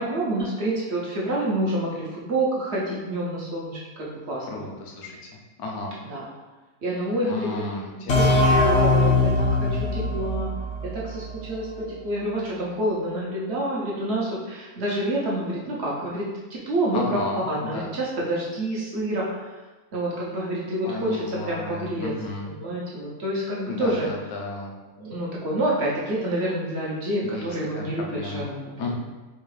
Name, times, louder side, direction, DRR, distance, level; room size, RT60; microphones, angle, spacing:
voice 1, 0.0-4.7 6.0-6.2 6.8-7.5 8.1-10.5 10.9-17.2 17.5-19.3 19.9-22.1 22.4-24.1 25.0-28.9, right 1 dB, 55° right, -4 dB, 0.9 m, -28 dB
voice 2, 4.5-5.1 5.6-5.9 7.3-8.4 16.9-17.9 20.8-22.5 23.7-24.7 27.2-27.5 27.7-28.5 28.8-28.9, left 2 dB, 80° left, 0 dB, 1.2 m, -33 dB
sound 1, 8.1-11.7, left 2 dB, 60° left, 0.8 m, -21 dB
4.5 x 2.4 x 3.1 m, 1.2 s
omnidirectional pair, 1.6 m